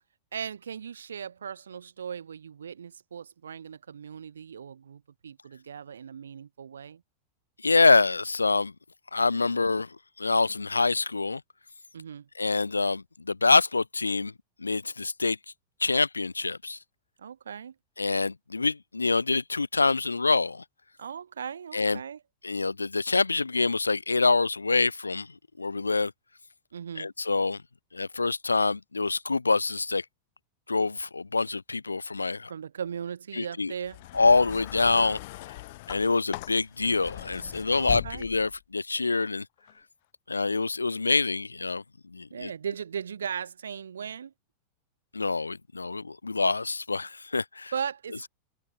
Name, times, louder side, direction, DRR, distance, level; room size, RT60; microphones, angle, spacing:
voice 1, 0.3-7.0 11.9-12.3 17.2-17.7 21.0-22.2 26.7-27.1 32.5-34.0 37.7-38.3 42.3-44.3 47.7-48.3, right 7 dB, 70° right, 1.6 m, -38 dB
voice 2, 7.6-8.7 9.1-9.9 10.2-11.4 12.4-14.3 14.6-15.4 15.8-16.8 18.0-20.6 21.7-22.0 22.4-25.3 25.6-26.1 27.0-27.6 27.9-30.0 30.7-32.5 33.3-33.7 34.1-35.2 35.9-39.4 40.3-41.8 42.1-42.5 45.1-47.7, left 3 dB, 80° left, 1.4 m, -25 dB
sound 1, 33.8-38.6 39.6-39.7, left 19 dB, 50° left, 1.5 m, -40 dB
open air
figure-of-eight pair, 90°, 0 cm